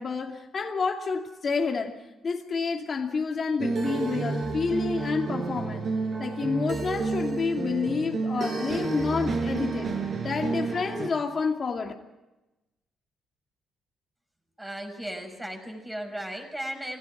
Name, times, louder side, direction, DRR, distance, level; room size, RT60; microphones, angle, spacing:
voice 1, 0.0-1.9 2.2-5.9 6.2-9.9 10.2-11.9, left 5 dB, 40° left, 2.5 m, -29 dB
ambience bells.(Globallevel), 3.6-11.1, right 4 dB, 50° right, 5.1 m, -30 dB
voice 2, 14.6-17.0, right 1 dB, 10° right, 6.1 m, -36 dB
23.0 x 16.5 x 9.8 m
cardioid pair, 90°, 0 cm